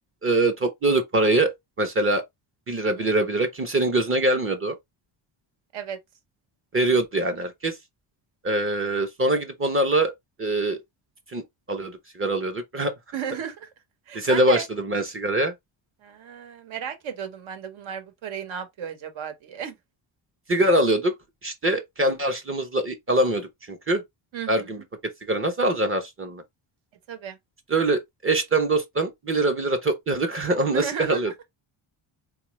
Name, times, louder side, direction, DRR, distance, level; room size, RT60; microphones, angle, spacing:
voice 1, 0.2-2.2 2.7-4.7 6.7-7.8 8.4-10.1 10.4-10.8 11.3-11.4 11.7-12.9 14.1-15.5 20.5-21.1 21.4-24.0 24.5-24.8 25.3-26.4 27.7-31.3, right 2 dB, 25° right, 0.6 m, -23 dB
voice 2, 13.1-13.7 14.1-14.7 16.0-19.7 24.3-24.7 27.1-27.4 30.7-31.2, right 8 dB, 70° right, 1.1 m, -34 dB
4.0 x 2.3 x 3.0 m
cardioid pair, 150°, 49 cm